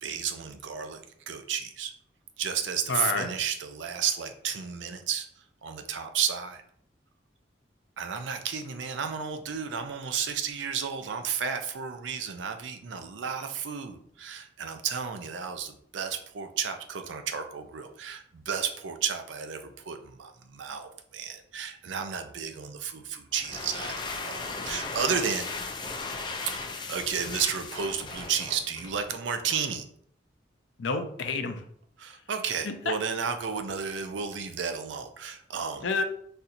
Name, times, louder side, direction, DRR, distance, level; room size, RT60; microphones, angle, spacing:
voice 1, 0.0-1.9 2.4-5.3 5.6-6.6 8.0-25.5 26.9-29.8 32.0-35.9, right 7 dB, 85° right, 7 dB, 0.4 m, -32 dB
voice 2, 2.9-3.3 30.8-31.6 32.6-32.9 35.8-36.0, left 4 dB, 85° left, 7 dB, 0.5 m, -29 dB
sound 1, 23.3-29.0, left 3 dB, 25° left, 0.4 m, -36 dB
4.1 x 2.7 x 2.5 m, 0.64 s
head